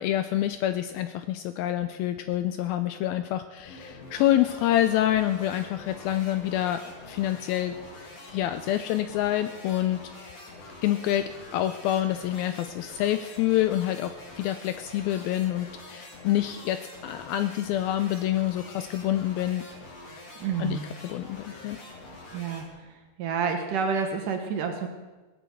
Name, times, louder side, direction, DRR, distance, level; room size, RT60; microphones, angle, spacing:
voice 1, 0.0-7.7 8.3-10.0 10.8-19.7 20.6-21.8, left 12 dB, 80° left, 11 dB, 2.2 m, -27 dB
sound 1, 3.6-22.7, left 2 dB, 45° left, 3.1 m, -45 dB
voice 2, 20.4-20.9 22.3-24.9, right 6 dB, 65° right, 5 dB, 2.4 m, -29 dB
17.5 x 8.8 x 8.2 m, 1.2 s
omnidirectional pair, 4.7 m